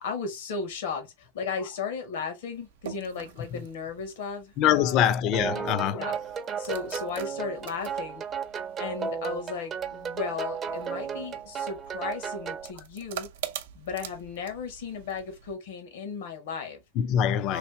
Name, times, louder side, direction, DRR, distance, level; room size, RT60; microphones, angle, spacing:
voice 1, 0.0-5.0 5.9-6.2 6.6-8.2 8.8-13.3 13.7-16.8 17.5-17.6, left 5 dB, 75° left, 1.3 m, -35 dB
sound 1, 2.5-15.5, right 11 dB, 75° right, 0.5 m, -46 dB
voice 2, 4.6-6.1 16.9-17.6, left 10 dB, 40° left, 0.5 m, -24 dB
sound 2, 5.3-12.7, right 7 dB, 25° right, 0.6 m, -34 dB
3.2 x 2.8 x 2.7 m
supercardioid pair, 140°, 0 cm